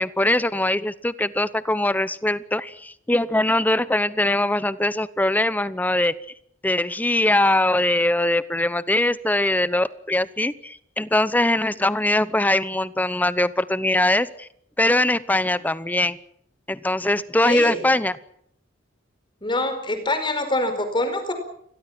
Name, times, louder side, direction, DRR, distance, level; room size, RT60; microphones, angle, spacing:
voice 1, 0.0-6.1 6.6-14.5 14.8-16.2 16.7-18.2, left 1 dB, 10° left, 16 dB, 0.8 m, -22 dB
voice 2, 17.4-17.8 19.4-21.3, left 2 dB, 25° left, 8 dB, 4.8 m, -25 dB
29.0 x 22.0 x 6.0 m, 0.69 s
head